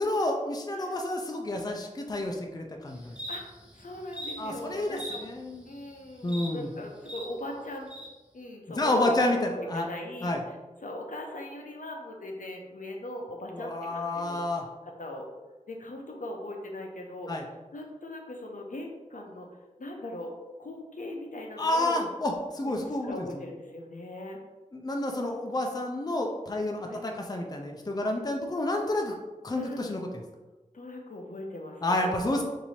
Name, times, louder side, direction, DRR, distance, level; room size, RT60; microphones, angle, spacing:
voice 1, 0.0-3.2 4.4-5.7 6.2-6.7 8.8-9.9 10.2-10.4 13.5-14.6 17.3-17.4 21.6-23.3 24.7-29.1 29.4-30.0 31.8-32.4, left 1 dB, 30° left, 2 dB, 0.4 m, -29 dB
voice 2, 0.7-1.0 3.3-5.3 5.6-7.9 8.3-10.6 10.8-14.4 14.8-15.3 15.7-19.5 19.8-20.3 20.6-22.0 23.0-24.4 26.9-27.0 29.5-29.9 30.7-32.4, left 1 dB, 75° left, 1 dB, 0.6 m, -40 dB
sound 1, 2.9-7.2 7.9-8.1, equal, 5° right, 0.9 m, -42 dB
3.0 x 2.7 x 4.1 m, 1.2 s
wide cardioid pair, 60°, 14 cm